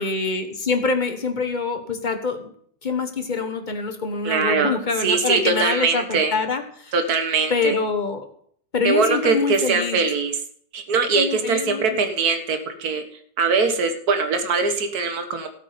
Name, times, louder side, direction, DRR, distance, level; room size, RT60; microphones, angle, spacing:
voice 1, 0.0-2.5 2.8-6.9 7.5-8.2 8.7-10.0 11.1-12.1, left 4 dB, 30° left, 6 dB, 1.3 m, -25 dB
voice 2, 4.2-6.3 6.9-7.7 8.8-10.4 10.7-13.0 13.4-15.5, right 4 dB, 60° right, 7 dB, 1.8 m, -22 dB
16.0 x 8.3 x 5.1 m, 0.63 s
omnidirectional pair, 1.9 m